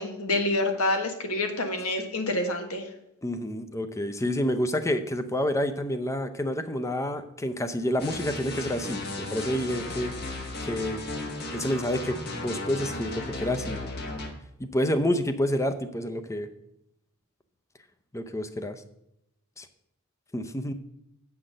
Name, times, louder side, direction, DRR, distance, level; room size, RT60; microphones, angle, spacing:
voice 1, 0.0-2.9, left 2 dB, 80° left, 5 dB, 1.5 m, -27 dB
voice 2, 3.2-11.0 11.5-13.9 14.6-16.5 18.1-18.8 19.6-19.7 20.3-20.7, left 1 dB, 15° left, 10 dB, 0.6 m, -29 dB
sound 1, 8.0-14.3, left 2 dB, 50° left, 1.3 m, -35 dB
8.2 x 5.8 x 6.5 m, 0.82 s
head